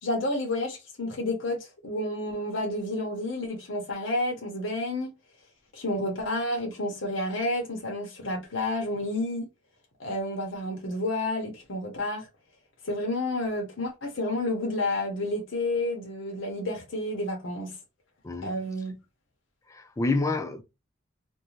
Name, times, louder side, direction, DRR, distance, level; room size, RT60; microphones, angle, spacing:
voice 1, 0.0-5.1 5.7-9.5 10.0-12.3 12.8-17.8 18.4-18.9, left 1 dB, 85° left, 0.9 m, -30 dB
voice 2, 19.7-20.6, left 3 dB, 15° left, 0.3 m, -28 dB
2.6 x 2.2 x 3.0 m
head